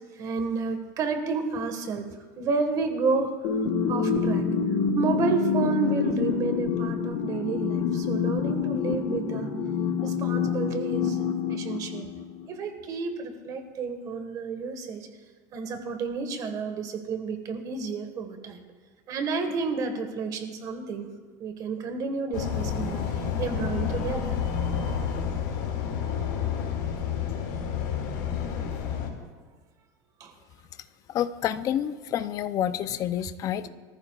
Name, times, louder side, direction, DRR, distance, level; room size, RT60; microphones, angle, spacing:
voice 1, 0.2-3.4 3.9-4.4 4.9-9.5 10.0-11.2 11.5-12.1 12.5-15.1 15.5-18.6 19.1-21.1 21.4-23.0 23.4-24.3 30.2-30.3, right 4 dB, 40° right, 6 dB, 1.6 m, -30 dB
sound 1, 3.4-12.5, left 6 dB, 65° left, 1.8 m, -27 dB
sound 2, 22.3-29.1, left 7 dB, 85° left, 2.4 m, -29 dB
voice 2, 31.1-33.7, left 10 dB, 35° left, 13 dB, 0.6 m, -28 dB
24.0 x 14.0 x 2.4 m, 1.4 s
cardioid pair, 150°, 10 cm